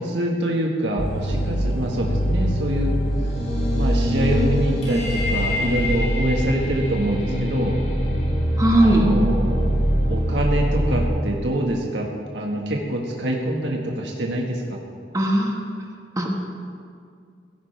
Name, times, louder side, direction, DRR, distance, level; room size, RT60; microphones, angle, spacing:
voice 1, 0.0-3.0 3.8-7.8 8.8-9.7 10.1-14.8, right 1 dB, 75° right, -1 dB, 1.6 m, -25 dB
sound 1, 1.0-11.1, equal, 35° left, 3.6 m, -23 dB
voice 2, 8.6-9.1 15.1-15.6 16.2-16.3, right 1 dB, 20° right, 0 dB, 1.5 m, -18 dB
17.0 x 15.0 x 3.4 m, 2.3 s
head